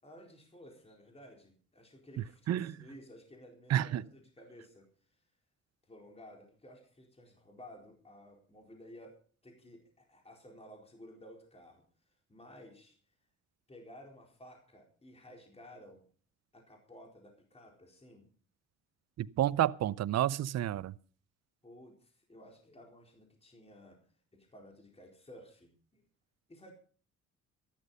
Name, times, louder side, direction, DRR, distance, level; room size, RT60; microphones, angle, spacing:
voice 1, 0.0-5.2 5.8-9.1 9.4-13.0 13.7-16.0 16.5-18.3 21.6-24.0 24.3-26.0 26.5-26.7, equal, 20° left, 4.3 m, -55 dB
voice 2, 3.7-4.0 19.2-20.9, right 12 dB, 60° right, 0.6 m, -30 dB
14.0 x 12.0 x 5.4 m
cardioid pair, 90°, 30 cm